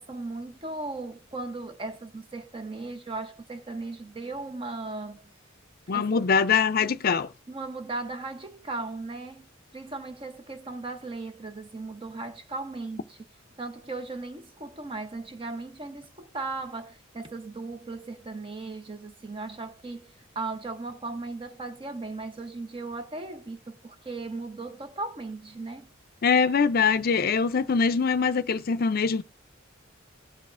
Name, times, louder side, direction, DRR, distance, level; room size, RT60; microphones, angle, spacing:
voice 1, 0.0-5.3 5.9-6.1 6.8-7.0 7.5-13.2 13.6-25.9, right 3 dB, 25° right, 0.8 m, -37 dB
voice 2, 5.9-7.3 26.2-29.2, left 5 dB, 50° left, 0.5 m, -23 dB
18.5 x 6.3 x 2.5 m
head